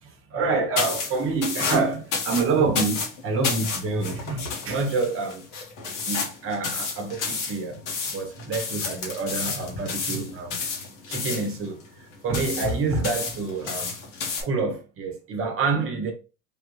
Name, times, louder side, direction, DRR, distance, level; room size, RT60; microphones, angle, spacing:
voice 1, 0.0-5.4 6.1-7.8 8.1-10.6 11.1-14.0 14.4-16.1, right 4 dB, 35° right, 0.9 m, -27 dB
sound 1, 0.8-14.4, left 5 dB, 70° left, 1.3 m, -31 dB
3.5 x 2.4 x 3.0 m
supercardioid pair, 105°, 38 cm